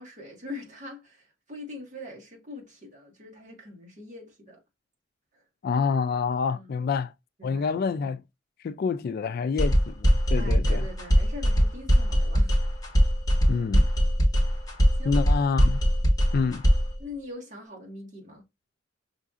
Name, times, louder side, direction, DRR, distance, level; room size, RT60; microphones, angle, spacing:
voice 1, 0.0-4.6 5.3-5.4 6.5-6.9 7.4-7.7 10.4-12.6 15.0-15.2 17.0-18.4, left 2 dB, 40° right, 1.5 m, -42 dB
voice 2, 5.6-7.1 7.4-8.2 8.6-10.9 13.5-13.8 15.0-15.8 16.3-16.6, left 5 dB, 55° left, 0.3 m, -27 dB
sound 1, 9.6-17.0, equal, 20° left, 1.3 m, -21 dB
5.6 x 2.7 x 2.4 m
head